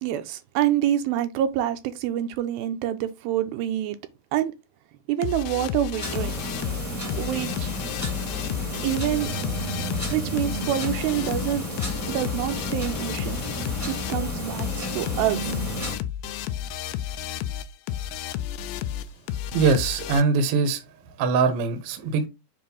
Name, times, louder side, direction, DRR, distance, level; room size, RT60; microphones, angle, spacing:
voice 1, 0.0-4.0 4.3-4.5 5.1-6.3 7.2-7.7 8.8-9.3 10.1-11.7 12.1-13.4 13.9-15.5, right 12 dB, 85° right, 2.5 m, -26 dB
sound 1, 5.2-20.2, left 11 dB, 85° left, 2.4 m, -32 dB
sound 2, 6.0-16.0, equal, 10° left, 1.0 m, -32 dB
voice 2, 19.5-20.8 21.2-22.3, right 4 dB, 70° right, 1.4 m, -22 dB
7.4 x 2.5 x 5.5 m
omnidirectional pair, 4.3 m